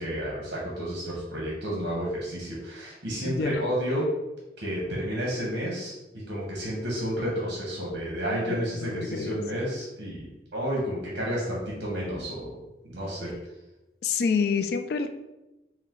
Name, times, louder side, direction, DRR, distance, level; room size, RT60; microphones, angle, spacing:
voice 1, 0.0-4.1 4.6-5.9 6.3-13.3, equal, 75° right, -4 dB, 1.0 m, -31 dB
voice 2, 3.2-3.6 8.2-8.5 8.8-9.3 14.0-15.1, left 5 dB, 60° left, 9 dB, 0.3 m, -27 dB
4.7 x 2.1 x 3.7 m, 1.0 s
head